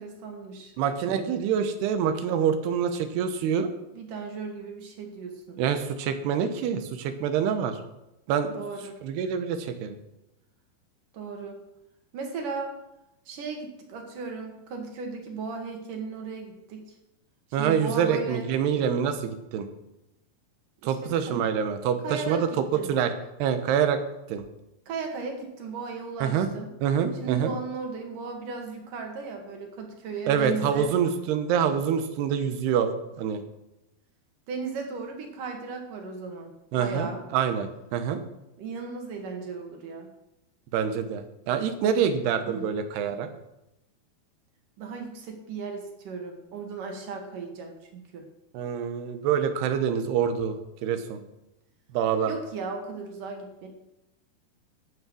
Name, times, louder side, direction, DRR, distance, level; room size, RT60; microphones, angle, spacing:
voice 1, 0.0-0.7 3.9-5.6 8.5-9.0 11.1-11.6 12.1-12.7 13.3-16.8 17.6-18.5 20.8-21.5 22.0-22.9 24.9-26.7 27.2-30.9 34.5-37.2 38.6-40.1 42.5-42.6 44.8-48.3 52.3-53.7, right 4 dB, 60° right, 3 dB, 3.2 m, -36 dB
voice 2, 0.8-3.7 5.6-7.8 8.3-8.6 9.0-9.9 17.5-19.7 20.8-23.1 23.4-24.0 24.3-24.4 26.2-26.5 26.8-27.5 30.3-33.4 36.7-38.2 40.7-43.3 48.5-50.6 50.8-51.2 51.9-52.3, right 7 dB, 90° right, 8 dB, 3.1 m, -26 dB
13.0 x 8.3 x 6.3 m, 0.90 s
omnidirectional pair, 4.5 m